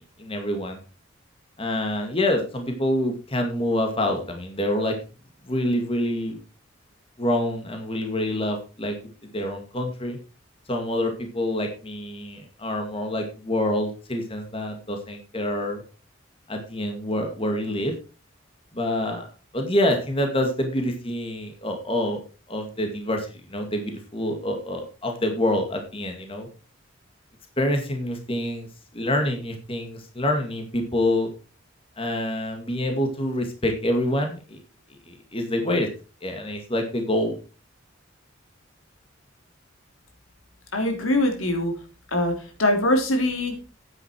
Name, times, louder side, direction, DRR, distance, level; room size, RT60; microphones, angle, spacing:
voice 1, 0.2-0.8 1.6-5.0 5.5-6.4 7.2-9.0 9.3-10.2 10.7-15.8 16.5-17.9 18.7-19.3 19.5-22.2 22.5-26.5 27.6-28.7 28.9-31.3 32.0-34.6 35.1-35.9 36.2-37.4, left 1 dB, 25° left, 4 dB, 2.1 m, -26 dB
voice 2, 40.7-41.7 42.1-43.6, left 1 dB, 85° left, 4 dB, 3.3 m, -23 dB
9.7 x 9.6 x 4.5 m, 0.33 s
head